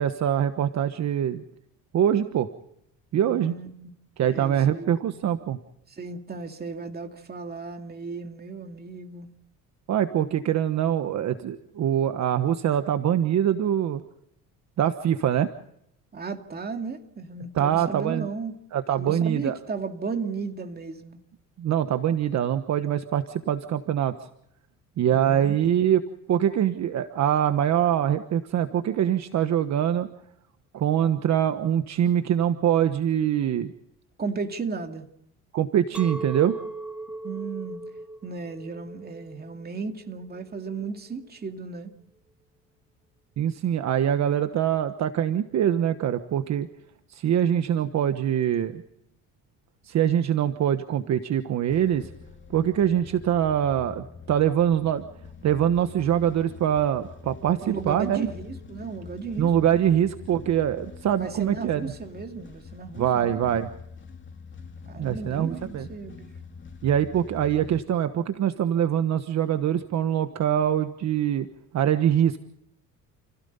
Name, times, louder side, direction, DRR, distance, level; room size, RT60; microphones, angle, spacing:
voice 1, 0.0-1.4 1.9-2.5 3.1-3.5 4.2-5.6 9.9-14.0 14.8-15.5 17.5-18.3 18.7-19.6 21.6-24.1 25.0-26.0 26.3-30.1 30.7-33.7 35.5-36.6 43.4-46.7 47.1-48.8 49.8-52.1 52.5-55.0 55.4-58.3 59.4-61.9 63.0-63.7 65.0-65.9 66.8-71.5 71.7-72.4, right 10 dB, 55° right, 1.2 m, -24 dB
voice 2, 3.2-4.0 4.2-5.0 5.9-9.3 16.1-18.5 19.0-21.2 25.1-25.5 34.2-35.1 37.2-37.8 38.2-41.9 57.6-59.5 61.2-63.5 64.9-66.3, right 4 dB, 30° right, 2.4 m, -35 dB
Chink clink, 35.9-41.1, right 1 dB, 5° right, 0.9 m, -39 dB
sound 1, 51.7-67.8, left 5 dB, 35° left, 2.8 m, -45 dB
30.0 x 16.5 x 5.5 m
cardioid pair, 120°, 33 cm